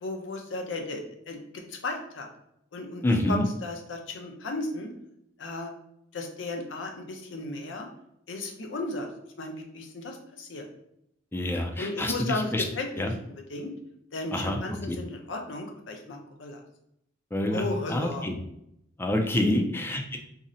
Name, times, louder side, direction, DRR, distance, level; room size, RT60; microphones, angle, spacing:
voice 1, 0.0-2.3 2.7-4.9 5.4-5.7 6.1-7.9 8.3-9.1 9.4-10.7 11.8-12.5 12.8-13.1 13.5-13.7 14.1-16.6 17.5-18.2 19.3-19.6, left 2 dB, 85° left, 3 dB, 0.6 m, -34 dB
voice 2, 3.0-3.5 11.3-12.6 13.0-13.1 14.3-14.6 14.9-15.0 17.3-18.4 19.0-20.2, left 1 dB, 10° left, 3 dB, 0.3 m, -27 dB
2.7 x 2.0 x 3.7 m, 0.76 s
head